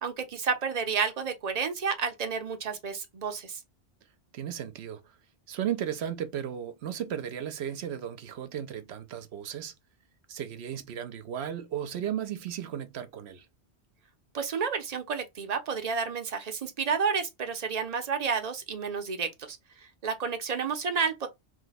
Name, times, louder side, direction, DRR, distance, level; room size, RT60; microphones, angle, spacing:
voice 1, 0.0-3.6 14.3-19.6 20.0-21.3, right 6 dB, 45° right, 0.6 m, -30 dB
voice 2, 4.3-5.2 5.5-9.7 10.3-13.5, right 9 dB, 70° right, 0.8 m, -35 dB
2.7 x 2.2 x 3.9 m
omnidirectional pair, 1.1 m